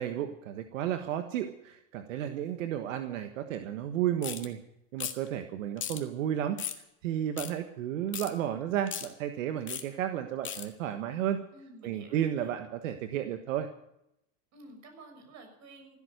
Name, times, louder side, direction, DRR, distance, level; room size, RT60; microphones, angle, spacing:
voice 1, 0.0-4.6 4.9-6.6 7.0-11.4 11.8-13.7, right 10 dB, 90° right, 7 dB, 1.5 m, -32 dB
sound 1, 4.2-4.5 5.0-5.3 5.8-6.0 6.6-6.8 7.4-7.5 8.1-8.3 8.9-9.1 9.7-9.8 10.5-10.7, left 9 dB, 30° left, 2.1 m, -36 dB
voice 2, 11.5-12.5 14.5-16.0, right 2 dB, 45° right, 5 dB, 6.5 m, -51 dB
16.0 x 12.5 x 6.7 m, 0.78 s
supercardioid pair, 115°, 38 cm